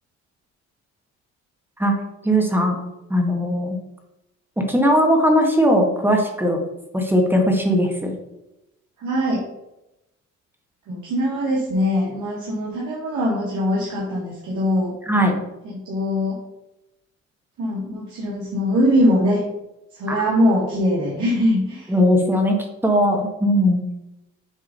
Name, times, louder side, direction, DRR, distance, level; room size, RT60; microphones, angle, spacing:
voice 1, 2.2-2.8 3.1-3.8 4.6-6.6 6.9-8.1 15.0-15.3 20.1-20.2 21.9-22.6 22.8-23.8, equal, 5° right, 2 dB, 1.6 m, -19 dB
voice 2, 9.0-9.4 10.9-14.9 15.7-16.4 17.6-19.4 19.9-21.9, equal, 75° right, -5 dB, 1.9 m, -22 dB
7.5 x 3.7 x 5.3 m, 0.91 s
cardioid pair, 90°, 30 cm